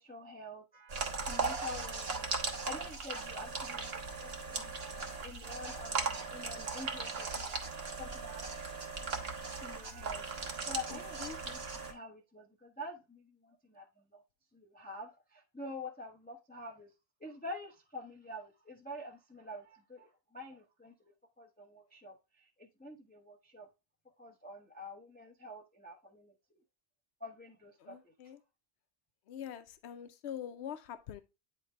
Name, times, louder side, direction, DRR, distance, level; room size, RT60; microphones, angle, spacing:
voice 1, 0.0-2.3 2.6-7.6 8.0-8.9 9.5-10.3 10.7-11.2 11.4-14.2 14.5-16.9 17.2-20.9 21.4-23.7 24.2-26.3 27.2-28.1, left 2 dB, 10° left, 0.7 m, -47 dB
sound 1, 0.9-11.9, right 4 dB, 65° right, 1.3 m, -38 dB
voice 2, 10.9-11.4 27.8-28.4 29.3-31.2, left 9 dB, 80° left, 0.9 m, -44 dB
9.2 x 3.2 x 3.2 m
omnidirectional pair, 1.1 m